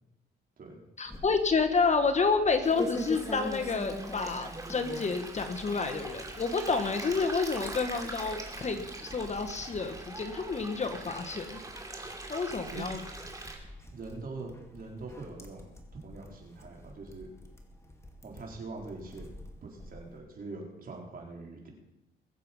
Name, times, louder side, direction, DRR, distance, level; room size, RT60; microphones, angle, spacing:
voice 1, 1.0-11.6 12.3-13.0, left 4 dB, 35° left, 7 dB, 1.4 m, -29 dB
sound 1, 1.1-20.2, left 1 dB, 15° left, 2.4 m, -45 dB
Stream, 2.6-13.5, right 2 dB, 15° right, 2.8 m, -43 dB
voice 2, 13.9-15.7 16.0-17.3 18.2-19.3 19.6-21.7, right 3 dB, 45° right, 0 dB, 4.4 m, -43 dB
21.5 x 7.7 x 5.5 m, 0.93 s
cardioid pair, 90°, 20 cm